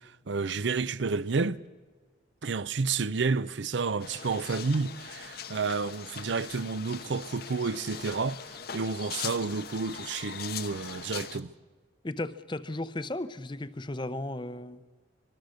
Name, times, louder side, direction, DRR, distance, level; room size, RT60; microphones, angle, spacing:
voice 1, 0.0-1.6 2.4-11.5, right 4 dB, 70° right, 0.6 m, -30 dB
sound 1, 4.0-11.4, left 8 dB, 50° left, 1.0 m, -41 dB
voice 2, 12.0-14.8, left 1 dB, 25° left, 0.7 m, -35 dB
25.0 x 23.0 x 6.5 m
head